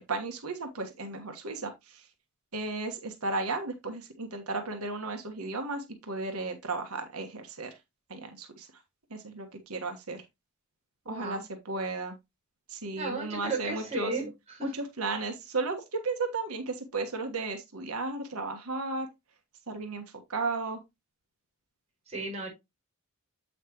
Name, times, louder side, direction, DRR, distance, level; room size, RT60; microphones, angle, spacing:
voice 1, 0.0-2.1 2.5-7.8 8.1-8.7 9.1-10.2 11.0-12.1 12.7-14.1 14.6-19.1 19.7-20.0 20.3-20.8, right 3 dB, 85° right, 1.4 m, -34 dB
voice 2, 11.1-11.4 12.9-14.3 14.6-14.7 22.1-22.5, right 2 dB, 30° right, 4.8 m, -34 dB
8.2 x 5.8 x 3.0 m
head